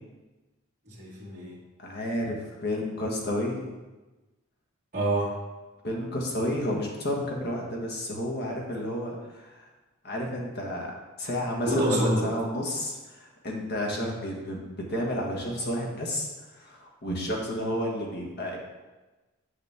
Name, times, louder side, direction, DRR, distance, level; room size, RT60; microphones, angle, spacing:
voice 1, 0.9-1.6 4.9-5.4 11.7-12.3 14.0-14.2, right 1 dB, 35° right, -8 dB, 1.9 m, -27 dB
voice 2, 1.8-3.7 5.8-9.7 10.0-10.9 11.2-18.6, left 1 dB, 50° left, -1 dB, 1.5 m, -31 dB
7.3 x 6.8 x 3.6 m, 1.2 s
head